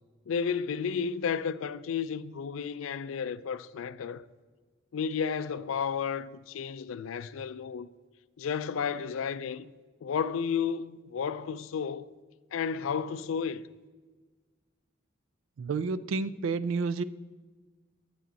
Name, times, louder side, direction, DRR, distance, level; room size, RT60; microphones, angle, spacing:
voice 1, 0.3-4.2 4.9-7.9 8.4-9.7 10.0-12.1 12.5-13.7, left 6 dB, 80° left, 0.4 m, -32 dB
voice 2, 15.6-17.0, right 4 dB, 80° right, 0.4 m, -30 dB
9.3 x 7.7 x 4.0 m
head